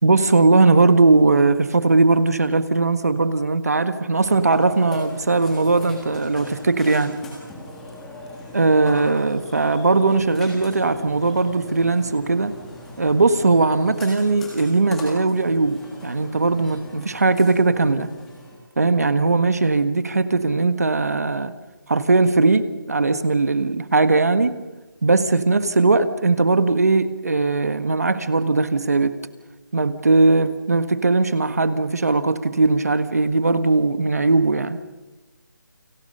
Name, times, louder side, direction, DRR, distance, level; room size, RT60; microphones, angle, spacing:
voice 1, 0.0-7.1 8.5-12.5 13.0-18.1 18.8-21.5 21.9-24.5 25.0-29.1 29.7-34.8, right 3 dB, 50° right, 11 dB, 1.7 m, -19 dB
Burping eructation, 4.2-18.6, left 1 dB, 5° left, 1.6 m, -40 dB
29.5 x 24.0 x 5.6 m, 1.1 s
figure-of-eight pair, 180°, 11 cm